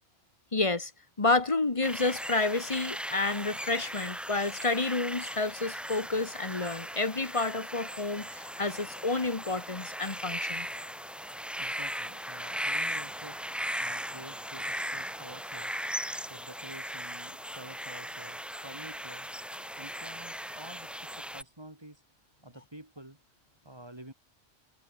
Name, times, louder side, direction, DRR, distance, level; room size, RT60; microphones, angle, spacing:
voice 1, 0.5-0.9 1.2-10.7, left 3 dB, 25° left, 1.3 m, -30 dB
sound 1, 1.8-21.4, equal, ahead, 0.5 m, -38 dB
voice 2, 11.6-13.4 13.8-15.7 16.3-19.3 19.7-22.0 22.4-23.2 23.6-24.1, right 1 dB, 20° right, 2.9 m, -49 dB
omnidirectional pair, 1.2 m